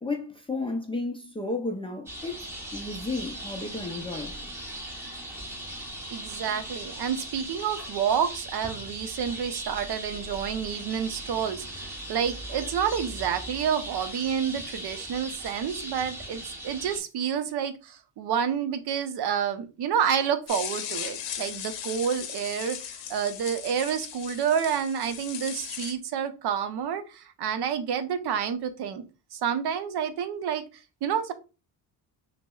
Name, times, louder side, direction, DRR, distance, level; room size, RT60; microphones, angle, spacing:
voice 1, 0.0-4.4, left 2 dB, 15° left, 0.3 m, -33 dB
sound 1, 2.1-17.0, right 1 dB, 5° right, 0.9 m, -39 dB
voice 2, 6.1-29.0 29.3-30.6 31.0-31.3, right 8 dB, 60° right, 0.6 m, -29 dB
sound 2, 20.5-25.9, left 9 dB, 80° left, 0.7 m, -37 dB
5.8 x 2.0 x 2.3 m
cardioid pair, 120°, 43 cm